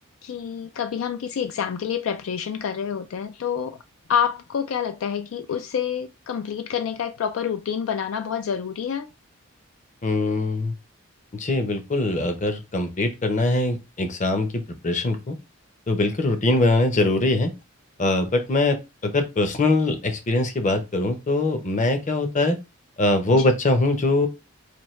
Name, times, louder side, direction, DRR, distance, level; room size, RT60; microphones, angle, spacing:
voice 1, 0.2-3.8 4.1-9.1 23.3-23.5, left 8 dB, 65° left, 0.3 m, -27 dB
voice 2, 10.0-10.7 11.3-15.4 15.9-17.5 18.0-22.6 23.0-24.3, left 2 dB, 35° left, 0.7 m, -22 dB
4.4 x 2.7 x 3.1 m
head